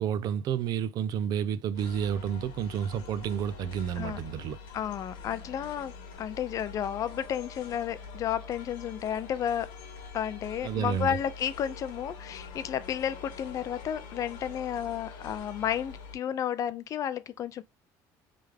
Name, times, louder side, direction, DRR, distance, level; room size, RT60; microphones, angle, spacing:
voice 1, 0.0-4.6 10.6-11.1, right 8 dB, 50° right, 0.4 m, -30 dB
sound 1, 1.7-16.2, left 5 dB, 70° left, 1.2 m, -45 dB
voice 2, 4.7-9.7 10.1-17.6, left 9 dB, 40° left, 0.4 m, -32 dB
3.4 x 3.4 x 3.3 m
cardioid pair, 135°, 8 cm